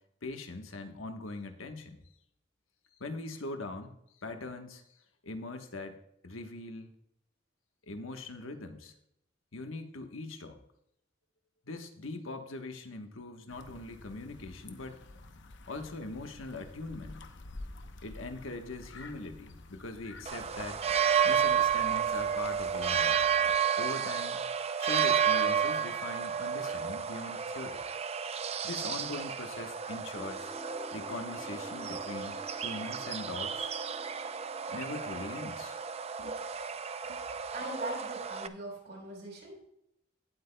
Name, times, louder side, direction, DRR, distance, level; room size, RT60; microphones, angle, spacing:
voice 1, 0.2-2.0 3.0-3.9 4.2-4.8 5.2-6.0 6.2-6.9 7.8-8.9 9.5-10.6 11.6-15.0 15.7-17.3 18.0-20.8 21.2-23.2 23.8-24.4 24.8-27.8 28.6-30.5 30.9-33.7 34.7-35.8 36.2-36.4 37.1-37.3, left 2 dB, 85° left, 6 dB, 1.2 m, -41 dB
sound 1, 13.5-23.6, left 2 dB, 60° left, 0.9 m, -50 dB
sound 2, 20.3-38.5, right 7 dB, 30° right, 0.5 m, -31 dB
sound 3, 30.1-36.0, equal, 5° left, 0.9 m, -50 dB
voice 2, 37.5-39.6, right 1 dB, 55° right, -1 dB, 4.3 m, -41 dB
18.0 x 8.3 x 2.2 m, 0.76 s
head